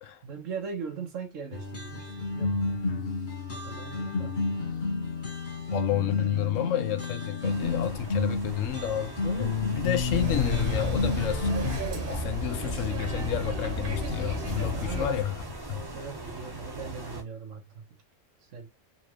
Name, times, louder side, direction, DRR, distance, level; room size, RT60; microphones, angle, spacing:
voice 1, 0.2-3.1 3.5-4.4 5.8-6.5 14.7-15.2 15.7-18.0 18.5-18.7, right 6 dB, 75° right, 1.4 m, -40 dB
sound 1, 1.5-11.8, left 4 dB, 40° left, 1.4 m, -31 dB
voice 2, 5.7-11.5 12.1-15.4 15.7-15.8, left 11 dB, 80° left, 1.1 m, -30 dB
sound 2, 7.4-17.2, right 1 dB, 20° right, 0.8 m, -40 dB
sound 3, 10.1-15.2, right 1 dB, 45° right, 1.3 m, -33 dB
4.2 x 2.5 x 3.0 m
omnidirectional pair, 1.3 m